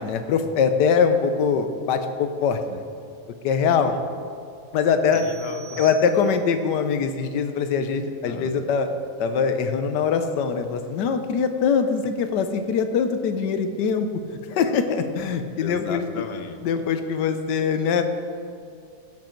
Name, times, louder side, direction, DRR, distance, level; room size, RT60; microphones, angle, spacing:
voice 1, 0.0-2.8 3.4-3.9 4.7-5.2 5.8-8.9 9.2-14.1 14.5-16.0 16.6-18.0, left 6 dB, 80° left, 8 dB, 1.4 m, -22 dB
voice 2, 5.1-5.9 8.3-8.5 15.6-16.6, left 5 dB, 55° left, 7 dB, 0.7 m, -35 dB
sound 1, 5.1-6.7, right 8 dB, 75° right, 0.6 m, -44 dB
15.0 x 7.6 x 4.5 m, 2.4 s
omnidirectional pair, 1.8 m